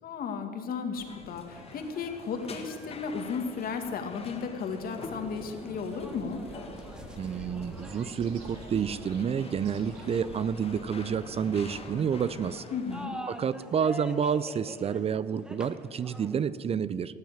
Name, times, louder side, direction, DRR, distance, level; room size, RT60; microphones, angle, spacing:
voice 1, 0.0-6.4 12.7-13.2, left 5 dB, 60° left, 5 dB, 2.1 m, -34 dB
sound 1, 0.9-13.1, left 4 dB, 35° left, 1.8 m, -47 dB
sound 2, 1.5-16.5, equal, 5° right, 1.3 m, -48 dB
sound 3, 4.9-12.3, right 3 dB, 90° right, 2.0 m, -47 dB
voice 2, 7.2-12.6 13.3-17.1, right 7 dB, 35° right, 17 dB, 0.5 m, -29 dB
18.0 x 7.6 x 8.8 m, 2.2 s
cardioid pair, 110°, 17 cm